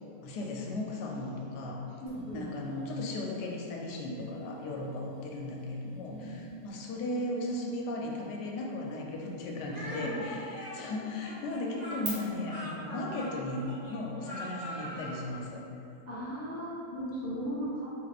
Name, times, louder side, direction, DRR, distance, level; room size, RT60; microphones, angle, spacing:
voice 1, 0.2-1.8 2.3-15.6, left 2 dB, 75° left, -1 dB, 1.2 m, -36 dB
voice 2, 2.0-2.5 6.1-6.7 9.8-10.1 16.1-17.9, right 1 dB, 25° left, -11 dB, 0.3 m, -37 dB
sound 1, 2.1-12.1, right 6 dB, 70° right, 1.6 m, -54 dB
Speech, 9.7-15.2, equal, 40° right, 0.6 m, -42 dB
3.9 x 2.8 x 4.0 m, 2.7 s
omnidirectional pair, 1.9 m